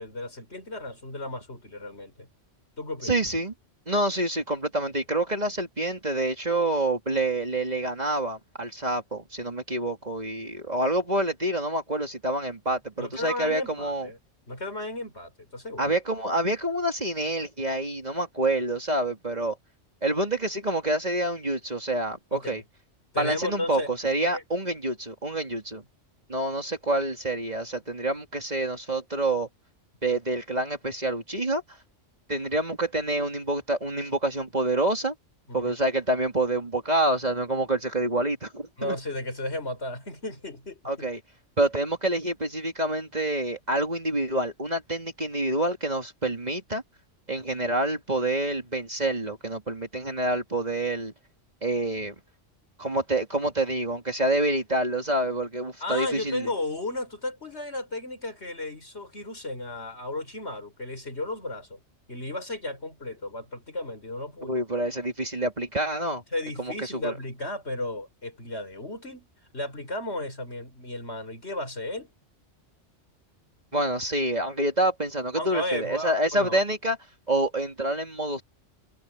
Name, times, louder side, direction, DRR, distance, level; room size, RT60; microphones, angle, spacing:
voice 1, 0.0-2.3 2.8-3.2 13.0-14.2 14.5-16.0 22.3-22.6 23.1-23.9 24.3-24.4 35.5-35.8 38.8-41.1 55.8-61.8 62.1-64.6 66.3-69.3 69.5-72.1 75.4-76.6, left 2 dB, 60° left, 6.1 m, -34 dB
voice 2, 3.0-3.5 3.9-14.1 15.8-19.6 20.0-22.6 23.2-25.8 26.3-29.5 30.0-31.6 32.3-35.1 35.5-39.0 40.8-41.2 41.6-46.8 47.3-51.1 51.6-52.1 52.8-56.5 64.4-66.2 66.6-67.1 73.7-77.0 77.3-78.4, right 1 dB, 35° right, 2.9 m, -27 dB
omnidirectional pair, 1.3 m